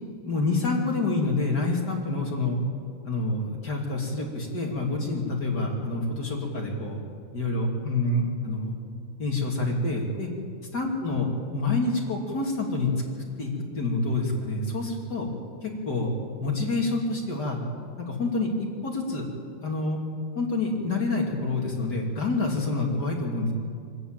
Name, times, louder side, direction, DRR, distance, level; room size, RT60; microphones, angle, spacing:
voice 1, 0.2-2.6 3.0-7.0 7.3-8.7 9.2-10.3 10.7-12.9 13.4-15.3 15.6-16.1 16.4-17.6 18.0-19.3 19.6-20.0 20.3-23.5, left 2 dB, 35° left, 0 dB, 2.9 m, -27 dB
24.5 x 13.0 x 9.0 m, 2.2 s
omnidirectional pair, 3.5 m